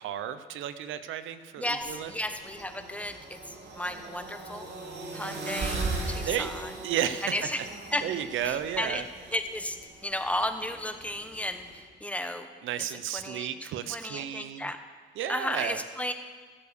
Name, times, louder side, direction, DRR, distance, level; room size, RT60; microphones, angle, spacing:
voice 1, 0.0-2.1 6.2-6.5 6.8-7.5 8.0-9.1 12.6-14.7 15.2-15.8, right 10 dB, 80° right, 12 dB, 0.7 m, -33 dB
voice 2, 1.6-4.7 5.1-6.7 7.3-7.6 7.9-8.1 8.4-9.0 9.3-9.8 10.0-12.5 13.1-14.8 15.3-16.1, left 1 dB, 5° left, 8 dB, 1.0 m, -34 dB
sound 1, 1.8-11.8, right 3 dB, 55° right, 2.7 m, -39 dB
15.5 x 7.0 x 6.8 m, 1.5 s
cardioid pair, 90°, 20 cm